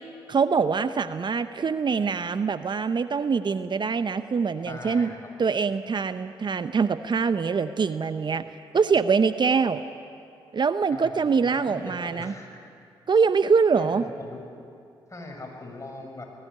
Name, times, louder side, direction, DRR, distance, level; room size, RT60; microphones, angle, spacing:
voice 1, 0.3-5.1 5.4-8.4 8.7-9.8 10.5-12.3 13.1-14.0, right 5 dB, 45° right, 12 dB, 0.8 m, -24 dB
voice 2, 4.6-5.3 10.9-11.2 11.4-12.5 13.7-14.4 15.1-16.2, left 2 dB, 30° left, 1 dB, 6.2 m, -40 dB
21.0 x 16.0 x 9.5 m, 2.4 s
supercardioid pair, 45°, 11 cm